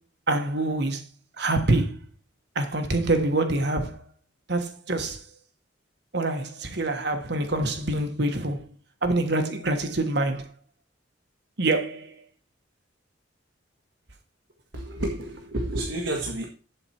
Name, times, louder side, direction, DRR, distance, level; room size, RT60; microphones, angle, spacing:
voice 1, 0.3-1.0 1.4-2.0 2.5-4.0 4.5-5.2 6.1-8.6 9.0-10.5 11.6-12.2, right 2 dB, 60° right, 1.4 m, -25 dB
voice 2, 14.7-16.5, right 1 dB, 80° right, 1.7 m, -30 dB
7.9 x 7.8 x 4.4 m
head